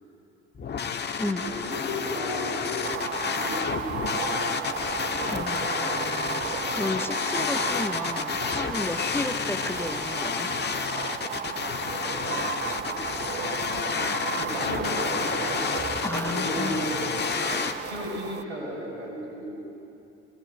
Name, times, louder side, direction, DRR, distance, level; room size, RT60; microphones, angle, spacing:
sound 1, 0.6-17.7, left 6 dB, 30° left, 1.6 m, -30 dB
voice 1, 1.2-2.9 3.2-4.6 12.8-13.2 14.4-15.6 16.0-17.0 17.5-19.6, equal, 80° right, -5 dB, 7.1 m, -35 dB
sound 2, 2.8-18.4, right 8 dB, 30° right, 0.8 m, -34 dB
voice 2, 5.3-6.0 6.7-10.5 16.0-16.8, left 2 dB, 5° left, 8 dB, 0.9 m, -33 dB
21.5 x 20.0 x 8.3 m, 2.7 s
figure-of-eight pair, 55°, 34 cm